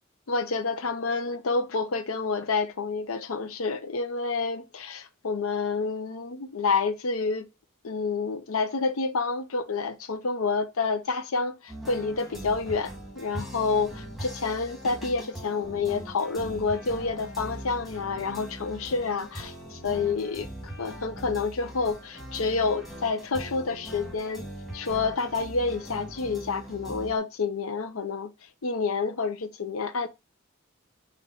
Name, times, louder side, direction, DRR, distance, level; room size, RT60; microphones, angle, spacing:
voice 1, 0.3-7.5 7.8-24.5 24.7-28.3 28.6-30.1, left 4 dB, 80° left, 0.7 m, -29 dB
sound 1, 11.7-27.2, equal, ahead, 1.7 m, -41 dB
4.5 x 3.0 x 3.8 m
head